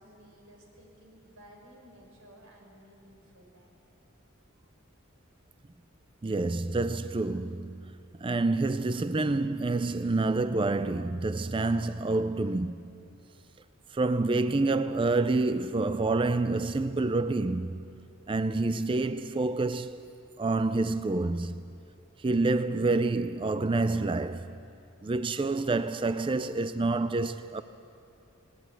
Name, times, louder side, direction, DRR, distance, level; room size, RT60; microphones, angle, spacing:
voice 1, 0.0-3.8, equal, 85° right, 5.3 m, -55 dB
voice 2, 6.2-12.8 13.9-17.8 18.3-20.0 20.4-21.5 22.2-24.5 25.0-27.6, right 3 dB, 25° right, 0.4 m, -28 dB
19.5 x 19.5 x 9.1 m
head